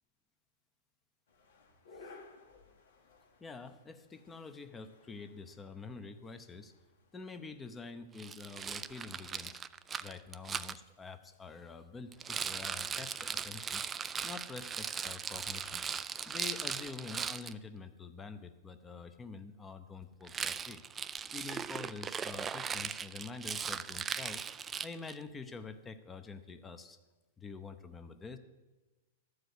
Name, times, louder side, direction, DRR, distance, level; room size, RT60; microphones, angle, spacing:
sound 1, 1.3-15.3, left 3 dB, 85° left, 1.9 m, -62 dB
voice 1, 3.4-6.7 7.1-9.6 10.0-13.8 14.2-15.8 16.2-20.8 21.3-24.4 24.8-27.0 27.4-28.4, left 4 dB, 15° left, 9 dB, 0.8 m, -47 dB
Rattle, 8.2-10.8 12.1-17.5 20.2-25.2, right 7 dB, 20° right, 0.3 m, -39 dB
12.5 x 4.9 x 8.1 m, 1.2 s
hypercardioid pair, 130°, 0 cm